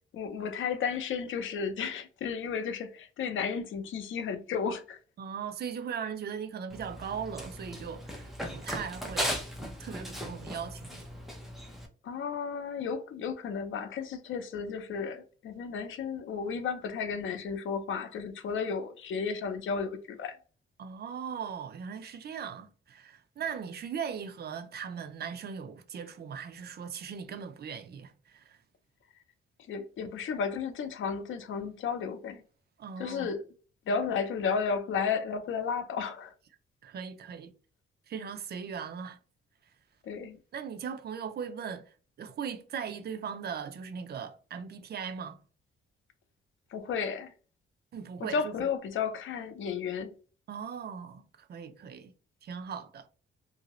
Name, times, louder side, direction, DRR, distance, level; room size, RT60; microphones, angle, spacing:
voice 1, 0.1-5.0 12.0-20.4 29.7-32.4 33.0-33.4 33.9-36.3 40.0-40.4 46.7-47.3 48.2-50.1, left 6 dB, 70° left, 0.6 m, -33 dB
voice 2, 5.2-9.4 9.8-11.1 20.8-28.6 32.8-33.3 36.8-37.5 38.1-39.2 40.5-45.4 47.9-48.5 50.5-52.1 52.4-53.1, right 7 dB, 50° right, 0.5 m, -39 dB
Run, 6.7-11.9, equal, ahead, 0.7 m, -37 dB
2.8 x 2.7 x 2.9 m
wide cardioid pair, 145°, 21 cm